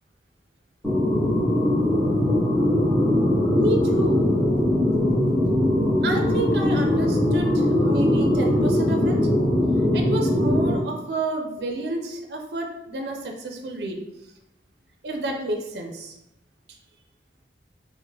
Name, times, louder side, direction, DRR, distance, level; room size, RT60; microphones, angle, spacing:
sound 1, 0.8-10.7, left 1 dB, 5° left, 0.8 m, -21 dB
voice 1, 3.5-4.3 6.0-9.2 9.9-14.0 15.0-16.1, right 2 dB, 65° right, 3 dB, 0.5 m, -29 dB
4.5 x 2.1 x 3.1 m, 0.87 s
head